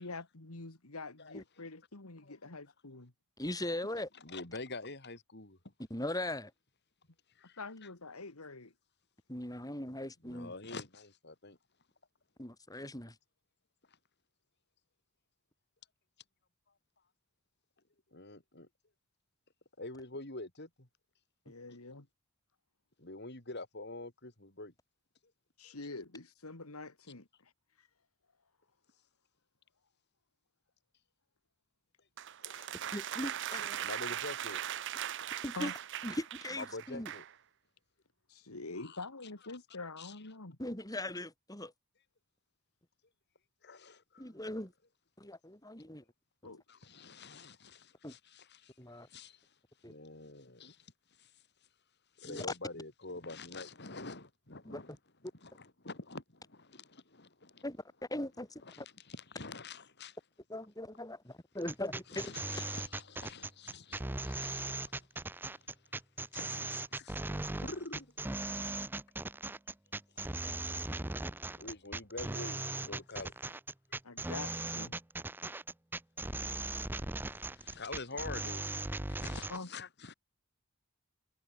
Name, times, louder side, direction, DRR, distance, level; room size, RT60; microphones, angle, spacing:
voice 1, 0.0-3.1 7.6-8.7 21.5-22.1 25.6-27.5 27.8-27.9 35.6-35.7 38.3-40.6 46.4-46.6 74.0-74.9 79.5-79.7, left 3 dB, 85° left, 2.2 m, -45 dB
voice 2, 3.4-4.1 5.9-6.5 9.3-10.5 12.4-13.2 32.9-33.8 35.4-35.7 36.0-37.1 40.6-41.7 44.2-44.7 45.2-46.0 46.4-46.5 48.0-48.1 48.8-49.1 49.8-49.9 52.3-52.5 54.6-54.8 57.6-57.8 58.1-58.9 60.5-62.3, left 1 dB, 15° left, 5.9 m, -40 dB
voice 3, 4.2-5.6 7.3-7.6 10.2-11.6 13.9-14.0 18.1-18.7 19.8-20.9 23.0-24.7 25.6-25.7 32.4-33.0 33.8-34.6 35.2-35.3 36.6-37.2 38.7-39.1 39.5-39.6 40.0-40.2 43.6-44.3 45.2-45.3 46.7-51.4 52.2-55.0 55.4-57.6 58.6-60.2 62.1-65.9 66.3-67.2 67.6-68.1 70.2-70.5 71.6-73.6 76.4-80.1, left 3 dB, 50° left, 4.0 m, -47 dB
sound 1, 32.2-37.3, right 10 dB, 55° right, 0.7 m, -39 dB
sound 2, 61.6-79.6, right 2 dB, 10° right, 0.5 m, -39 dB
head